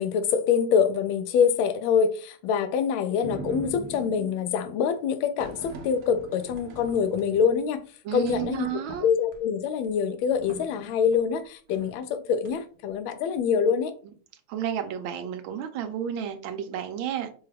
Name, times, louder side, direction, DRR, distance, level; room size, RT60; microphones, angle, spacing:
voice 1, 0.0-7.8 8.1-8.7 9.0-13.9, left 7 dB, 85° left, 1.4 m, -25 dB
sound 1, 3.2-4.5 5.4-7.7 8.1-9.4 9.8-9.9 10.3-11.3 11.7-12.0 12.4-12.9, right 3 dB, 70° right, 0.8 m, -42 dB
voice 2, 8.0-9.1 14.5-17.3, right 9 dB, 85° right, 1.4 m, -31 dB
5.4 x 2.3 x 3.3 m
omnidirectional pair, 2.2 m